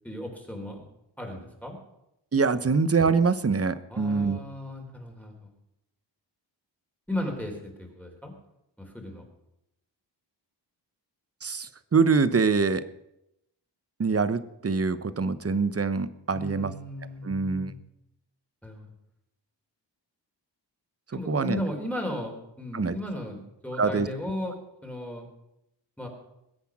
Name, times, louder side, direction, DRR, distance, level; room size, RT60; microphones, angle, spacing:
voice 1, 0.0-0.8 1.2-1.8 3.9-5.5 7.1-8.3 8.8-9.2 16.3-17.8 18.6-18.9 21.1-24.5 24.8-25.3 26.0-26.1, left 1 dB, 5° left, 1 dB, 4.1 m, -35 dB
voice 2, 2.3-4.4 11.4-12.8 14.0-16.7 17.2-17.7 21.3-21.6 22.7-23.0 23.8-24.1, right 4 dB, 35° right, 15 dB, 1.0 m, -24 dB
21.0 x 8.2 x 6.1 m, 0.85 s
cardioid pair, 65°, 44 cm